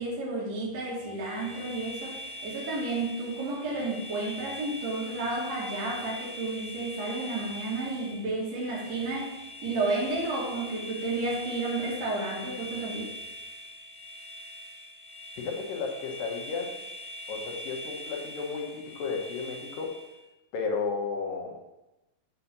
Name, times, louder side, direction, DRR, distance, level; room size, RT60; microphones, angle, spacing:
voice 1, 0.0-13.1, right 2 dB, 55° right, -6 dB, 2.5 m, -32 dB
sound 1, 1.0-20.2, left 1 dB, 50° left, 1.6 m, -42 dB
voice 2, 15.4-16.9 17.3-19.9 20.5-21.6, left 5 dB, 75° left, 1 dB, 2.7 m, -33 dB
7.0 x 4.2 x 6.7 m, 1.0 s
omnidirectional pair, 4.1 m